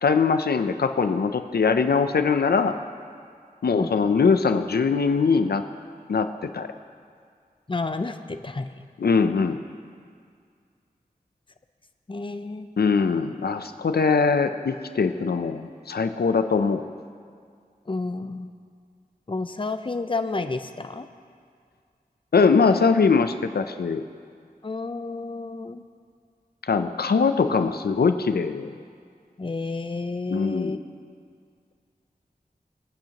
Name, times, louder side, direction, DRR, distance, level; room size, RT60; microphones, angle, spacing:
voice 1, 0.0-2.7 3.6-5.6 6.1-6.7 9.0-9.6 12.8-16.8 22.3-24.0 26.6-28.7 30.3-30.8, left 5 dB, 85° left, 9 dB, 0.5 m, -22 dB
voice 2, 7.7-8.7 12.1-12.7 17.9-18.5 19.3-21.1 24.6-25.8 29.4-30.8, left 3 dB, 35° left, 9 dB, 0.6 m, -30 dB
25.0 x 9.0 x 2.9 m, 2.2 s
wide cardioid pair, 45°, 16 cm